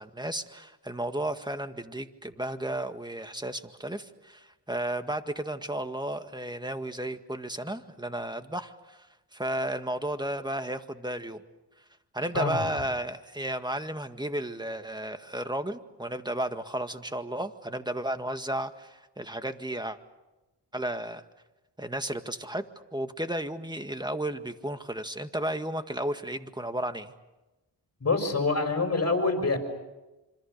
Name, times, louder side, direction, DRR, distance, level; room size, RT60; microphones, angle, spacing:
voice 1, 0.0-9.0 9.3-11.4 12.1-20.0 20.7-21.2 21.8-22.6 22.9-27.1, right 1 dB, 10° right, 8 dB, 1.8 m, -33 dB
voice 2, 28.0-29.6, left 3 dB, 35° left, 6 dB, 6.0 m, -26 dB
26.5 x 26.0 x 6.7 m, 1.1 s
cardioid pair, 70°, 42 cm